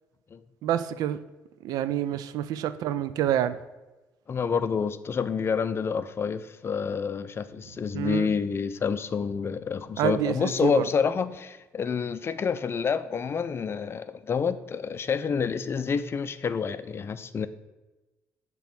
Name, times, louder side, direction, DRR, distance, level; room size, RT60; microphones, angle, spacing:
voice 1, 0.6-1.2 1.6-3.6 7.9-8.3 10.0-10.8, right 11 dB, 75° right, 14 dB, 0.4 m, -27 dB
voice 2, 4.3-17.5, left 6 dB, 40° left, 13 dB, 0.4 m, -28 dB
7.0 x 3.0 x 6.0 m, 1.1 s
supercardioid pair, 75°, 6 cm